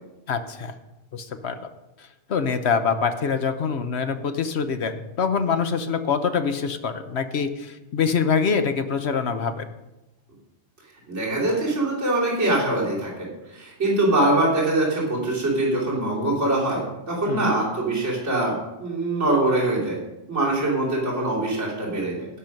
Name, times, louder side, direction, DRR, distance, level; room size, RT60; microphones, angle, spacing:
voice 1, 0.3-0.7 1.1-1.6 2.0-9.6 17.3-17.5, left 6 dB, 65° left, 8 dB, 1.1 m, -25 dB
voice 2, 11.1-16.8 17.1-20.0 20.3-22.3, right 2 dB, 85° right, -6 dB, 3.5 m, -23 dB
17.0 x 6.1 x 5.2 m, 0.99 s
omnidirectional pair, 1.2 m